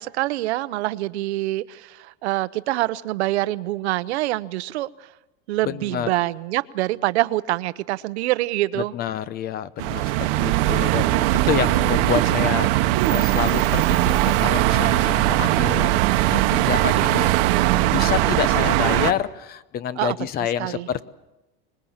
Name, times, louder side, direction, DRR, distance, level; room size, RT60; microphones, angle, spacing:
voice 1, 0.0-5.1 5.5-8.9 20.0-20.9, right 17 dB, 85° right, 15 dB, 0.9 m, -25 dB
voice 2, 5.7-6.1 8.9-12.7 13.1-15.9 16.3-17.3 17.9-21.1, left 9 dB, 30° left, 16 dB, 0.8 m, -28 dB
sound 1, 9.8-19.1, right 16 dB, 60° right, 1.1 m, -20 dB
25.5 x 21.0 x 7.3 m, 0.99 s
supercardioid pair, 160°, 32 cm